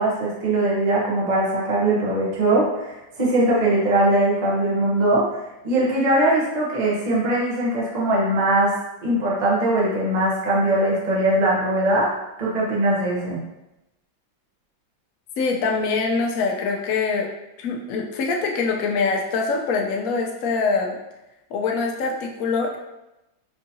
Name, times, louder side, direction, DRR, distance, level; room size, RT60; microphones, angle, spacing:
voice 1, 0.0-8.7 9.0-12.1 12.4-13.4, right 1 dB, 60° right, -5 dB, 0.4 m, -21 dB
voice 2, 15.4-17.3 17.6-21.0 21.5-22.8, left 4 dB, 75° left, 1 dB, 0.8 m, -24 dB
4.5 x 2.6 x 2.7 m, 0.94 s
omnidirectional pair, 2.1 m